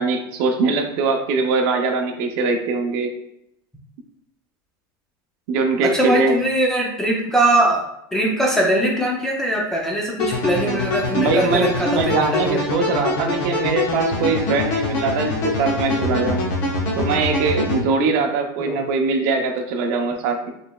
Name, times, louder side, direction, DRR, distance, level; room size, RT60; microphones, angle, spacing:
voice 1, 0.0-3.1 5.5-6.4 11.1-16.4 16.9-20.5, right 4 dB, 45° right, 4 dB, 0.6 m, -22 dB
voice 2, 5.8-7.8 8.1-12.6 18.6-18.8, right 1 dB, 5° left, -2 dB, 0.4 m, -21 dB
sound 1, 10.2-17.8, left 2 dB, 40° left, 1.0 m, -24 dB
4.8 x 3.3 x 2.2 m, 0.78 s
supercardioid pair, 170°, 11 cm